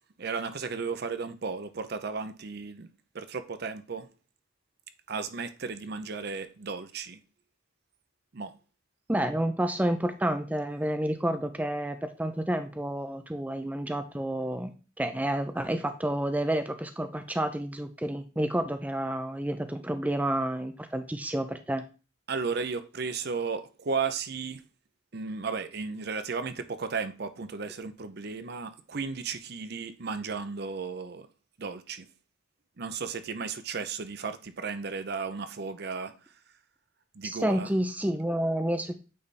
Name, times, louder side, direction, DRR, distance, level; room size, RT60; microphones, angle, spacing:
voice 1, 0.2-2.9 3.1-4.1 5.1-7.2 8.3-8.5 22.3-24.6 25.1-31.3 31.6-32.1 32.8-36.1 37.2-37.7, right 5 dB, 50° right, 0.6 m, -34 dB
voice 2, 9.1-21.8 37.2-38.9, right 1 dB, 10° right, 0.4 m, -30 dB
8.5 x 3.4 x 4.1 m
head